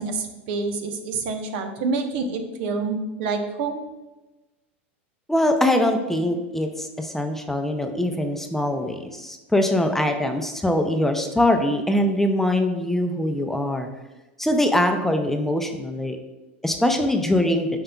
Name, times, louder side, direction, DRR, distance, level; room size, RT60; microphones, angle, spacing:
voice 1, 0.0-3.8, right 4 dB, 60° right, 6 dB, 1.0 m, -27 dB
voice 2, 5.3-13.9 14.4-16.2 16.6-17.7, left 1 dB, 5° left, 5 dB, 0.6 m, -22 dB
8.6 x 5.5 x 2.3 m, 1.1 s
hypercardioid pair, 100°, 6 cm